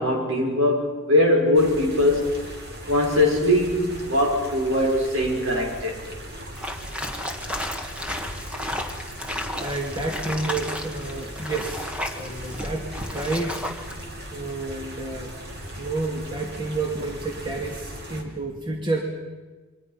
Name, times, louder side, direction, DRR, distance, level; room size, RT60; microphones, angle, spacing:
voice 1, 0.0-2.3 2.9-6.0, left 1 dB, 65° right, 1 dB, 5.6 m, -21 dB
sound 1, 1.5-18.2, equal, 50° right, 3.3 m, -38 dB
sound 2, 6.6-14.0, left 1 dB, 5° right, 1.5 m, -33 dB
voice 2, 9.6-13.6 14.3-15.3 15.8-19.0, right 2 dB, 20° right, 0 dB, 2.5 m, -30 dB
28.0 x 23.0 x 5.9 m, 1.3 s
head